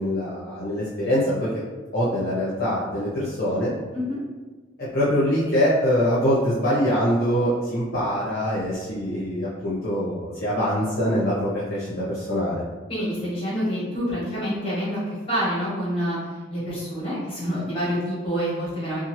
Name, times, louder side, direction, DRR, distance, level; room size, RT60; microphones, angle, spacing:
voice 1, 0.0-1.5 1.9-3.7 4.8-12.6, equal, 50° left, -9 dB, 0.8 m, -24 dB
voice 2, 12.9-15.0 15.3-16.2 16.5-19.0, equal, 30° left, -7 dB, 1.2 m, -27 dB
2.7 x 2.4 x 2.9 m, 1.3 s
head